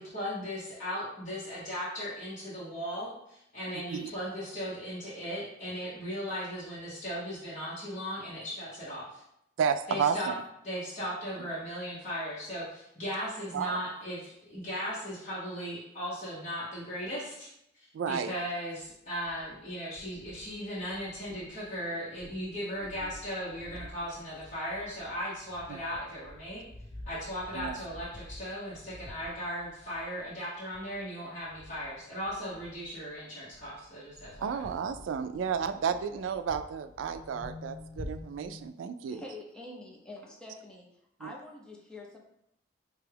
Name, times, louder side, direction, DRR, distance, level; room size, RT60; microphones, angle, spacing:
voice 1, 0.0-9.2 9.9-10.3 10.6-17.5 17.7-26.7 27.1-34.6, equal, 40° left, -10 dB, 1.1 m, -37 dB
voice 2, 9.6-10.3 13.5-13.8 17.9-18.3 25.7-25.8 27.5-27.7 34.4-39.2 41.2-41.3, right 7 dB, 80° right, 10 dB, 0.3 m, -32 dB
sound 1, 18.8-19.6 20.0-21.8 22.1-33.2 33.4-38.7, left 1 dB, 15° right, 1.1 m, -49 dB
voice 3, 39.1-40.9 41.2-42.2, left 2 dB, 5° left, -3 dB, 0.7 m, -46 dB
5.1 x 2.3 x 3.4 m, 0.78 s
head